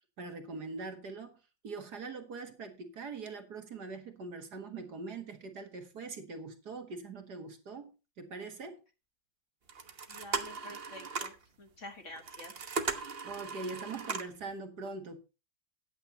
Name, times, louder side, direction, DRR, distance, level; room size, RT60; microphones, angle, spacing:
voice 1, 0.2-1.4 1.6-8.8 13.2-15.2, right 3 dB, 55° right, 2.2 m, -42 dB
sound 1, 9.7-11.4 12.1-14.4, right 4 dB, 35° right, 1.1 m, -38 dB
voice 2, 10.1-11.3 11.6-12.7, left 1 dB, 40° left, 1.7 m, -48 dB
14.5 x 9.7 x 2.8 m
omnidirectional pair, 2.1 m